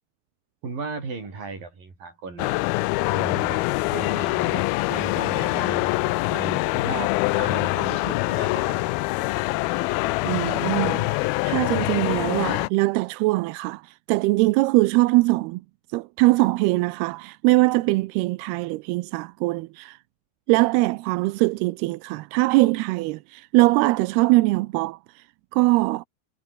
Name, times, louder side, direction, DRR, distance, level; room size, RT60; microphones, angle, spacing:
voice 1, 0.6-2.5 3.1-8.9, right 4 dB, 55° right, 8.8 m, -36 dB
sound 1, 2.4-12.7, left 21 dB, 80° left, 2.3 m, -24 dB
sound 2, 5.2-11.0, left 7 dB, 40° left, 2.9 m, -45 dB
voice 2, 10.3-15.6 15.9-20.0 20.5-25.2 25.5-26.1, right 21 dB, 85° right, 2.6 m, -22 dB
omnidirectional pair, 4.7 m